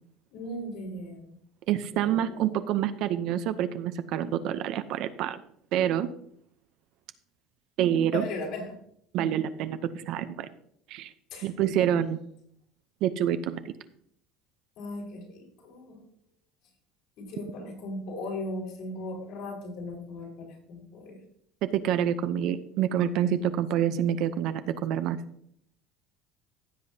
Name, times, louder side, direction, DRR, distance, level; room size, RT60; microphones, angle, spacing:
voice 1, 0.3-1.3 1.9-2.6 8.1-8.8 11.3-11.5 14.8-16.0 17.2-21.2, left 2 dB, 65° left, -1 dB, 4.4 m, -38 dB
voice 2, 1.7-5.4 5.7-6.1 7.8-8.3 9.1-10.5 10.9-11.1 11.4-12.2 13.0-13.7 21.8-25.2, right 10 dB, 60° right, 11 dB, 0.6 m, -27 dB
15.5 x 7.9 x 2.8 m, 0.67 s
cardioid pair, 140°, 0 cm